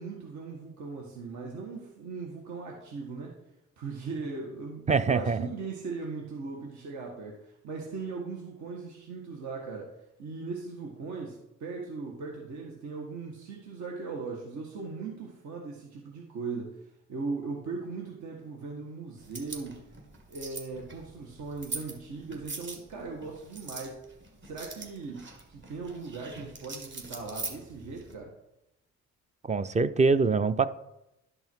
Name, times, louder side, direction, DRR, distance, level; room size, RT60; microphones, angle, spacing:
voice 1, 0.0-3.3 3.8-19.9 20.3-24.0 24.4-28.3, right 4 dB, 70° right, 0 dB, 1.6 m, -39 dB
voice 2, 4.9-5.4 29.4-30.7, right 4 dB, 25° right, 14 dB, 0.5 m, -24 dB
sound 1, 19.2-28.1, right 3 dB, 40° right, 1.9 m, -43 dB
11.5 x 5.5 x 4.6 m, 0.88 s
cardioid pair, 90°, 30 cm